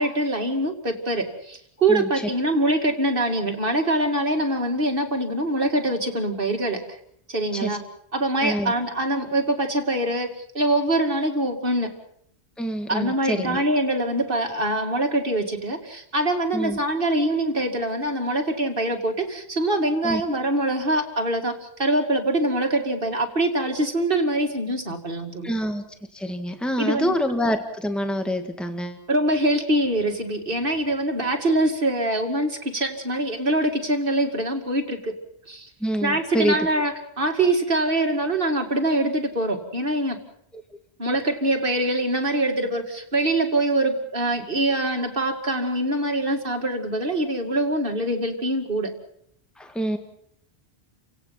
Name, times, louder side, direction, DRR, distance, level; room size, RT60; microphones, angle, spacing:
voice 1, 0.0-6.8 7.3-7.8 8.1-11.9 12.9-25.5 26.8-27.1 29.1-35.1 35.5-35.7 36.0-40.2 41.0-48.9, right 1 dB, 60° right, 4 dB, 2.7 m, -24 dB
voice 2, 1.9-2.3 7.5-7.8 8.4-8.7 12.6-13.6 16.5-16.8 20.0-20.2 25.4-25.8 26.1-29.0 35.8-36.7 49.6-50.0, equal, ahead, 6 dB, 1.8 m, -26 dB
30.0 x 17.5 x 5.8 m, 0.68 s
omnidirectional pair, 1.1 m